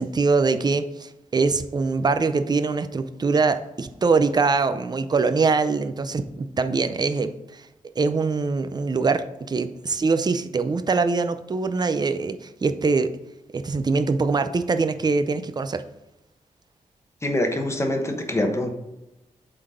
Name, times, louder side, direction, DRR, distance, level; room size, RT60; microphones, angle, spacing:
voice 1, 0.0-7.6 8.0-13.1 13.5-15.8, right 4 dB, 30° right, 10 dB, 0.5 m, -23 dB
voice 2, 17.2-18.7, left 1 dB, 20° left, 4 dB, 1.0 m, -24 dB
7.9 x 3.9 x 5.0 m, 0.95 s
wide cardioid pair, 115°, 14 cm